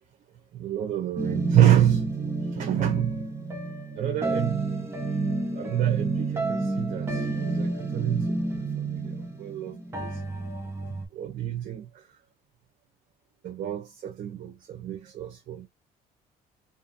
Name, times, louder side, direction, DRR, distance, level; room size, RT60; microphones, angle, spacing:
voice 1, 0.5-2.1 2.5-3.3 3.9-4.6 5.5-10.2 11.1-12.1 13.4-15.7, right 11 dB, 50° right, 0.7 m, -27 dB
sound 1, 1.2-11.1, right 3 dB, 15° right, 0.9 m, -30 dB
2.6 x 2.6 x 2.6 m
cardioid pair, 110°, 17 cm